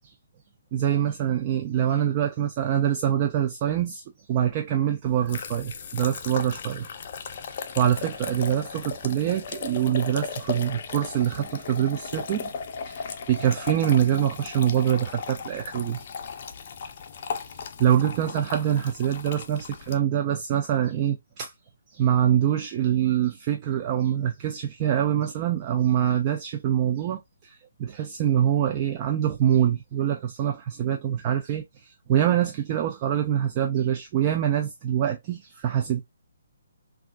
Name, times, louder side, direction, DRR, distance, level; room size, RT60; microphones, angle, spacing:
voice 1, 0.7-4.0 4.3-6.9 7.5-12.5 12.9-16.1 17.4-17.5 17.8-21.5 21.9-36.0, right 10 dB, 30° right, 0.4 m, -25 dB
sound 1, 5.0-20.0, left 6 dB, 45° left, 0.5 m, -37 dB
3.5 x 2.4 x 2.3 m
hypercardioid pair, 155°, 0 cm